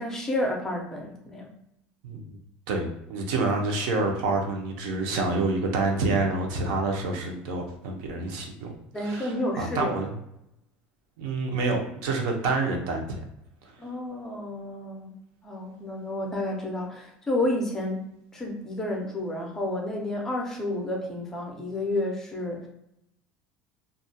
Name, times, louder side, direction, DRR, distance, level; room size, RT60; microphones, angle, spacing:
voice 1, 0.0-1.5 8.9-10.0 13.8-15.1 15.4-22.7, left 1 dB, 10° left, 0 dB, 0.4 m, -30 dB
voice 2, 2.0-2.4 2.7-8.7 9.0-10.2 11.2-13.2, right 3 dB, 75° right, 2 dB, 0.6 m, -28 dB
2.3 x 2.2 x 2.7 m, 0.81 s
cardioid pair, 155°, 4 cm